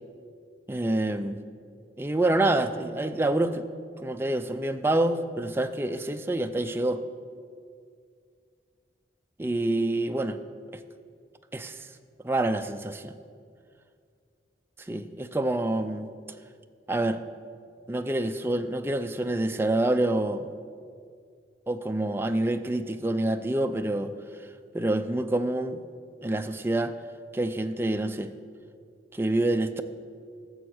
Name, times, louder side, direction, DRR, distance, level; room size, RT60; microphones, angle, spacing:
voice 1, 0.7-1.4 2.0-3.6 4.0-7.0 9.4-10.4 11.5-11.9 12.2-13.1 14.9-16.1 16.9-17.2 17.9-20.5 21.7-24.1 24.7-25.8 26.2-26.9 27.3-28.3 29.1-29.8, right 1 dB, 15° right, 7 dB, 0.4 m, -27 dB
13.0 x 7.1 x 6.1 m, 2.2 s
head